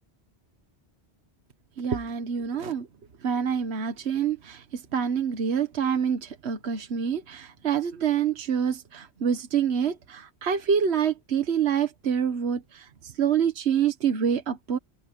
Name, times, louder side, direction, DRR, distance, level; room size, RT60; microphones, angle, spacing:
voice 1, 1.8-2.9 3.2-14.8, right 7 dB, 70° right, 1.4 m, -26 dB
open air
omnidirectional pair, 1.1 m